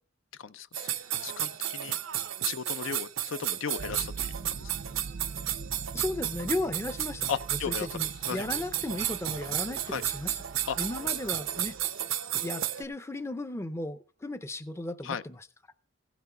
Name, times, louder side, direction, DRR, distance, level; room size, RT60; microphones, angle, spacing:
voice 1, 0.4-0.9 1.2-2.0 2.4-4.7 7.3-7.9 8.3-8.5 9.9-10.0 10.7-10.8 15.0-15.2, left 7 dB, 80° left, 0.5 m, -36 dB
sound 1, 0.7-12.8, right 11 dB, 90° right, 0.7 m, -33 dB
sound 2, 3.8-11.9, right 4 dB, 50° right, 0.4 m, -44 dB
voice 2, 5.9-10.4 10.8-11.8 12.4-15.5, left 2 dB, 15° left, 0.5 m, -35 dB
16.0 x 6.1 x 5.5 m
head